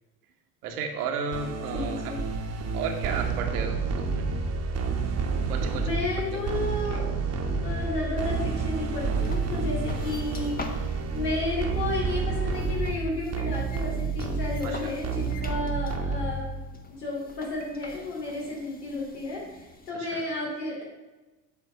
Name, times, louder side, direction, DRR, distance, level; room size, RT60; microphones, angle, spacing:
voice 1, 0.6-2.1 2.7-4.3 5.5-5.9 6.3-6.4 6.9-7.0 14.6-14.9 20.0-20.2, right 5 dB, 70° right, 4 dB, 1.4 m, -33 dB
sound 1, 1.3-16.7, right 4 dB, 30° right, 1.2 m, -29 dB
voice 2, 1.7-2.2 5.8-7.1 7.4-20.8, left 2 dB, 80° left, -3 dB, 2.9 m, -33 dB
sound 2, 9.2-19.9, left 2 dB, 20° left, 1.1 m, -45 dB
8.4 x 4.5 x 5.7 m, 1.1 s
figure-of-eight pair, 70°, 48 cm